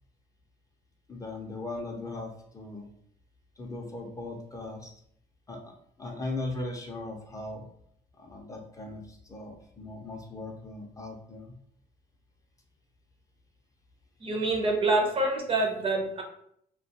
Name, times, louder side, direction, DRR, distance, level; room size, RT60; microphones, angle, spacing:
voice 1, 1.1-2.9 3.6-4.9 5.5-7.6 8.2-11.6, left 2 dB, 20° left, 1 dB, 0.4 m, -38 dB
voice 2, 14.2-16.2, right 2 dB, 35° right, 2 dB, 0.5 m, -26 dB
2.2 x 2.2 x 2.7 m, 0.70 s
cardioid pair, 110°, 17 cm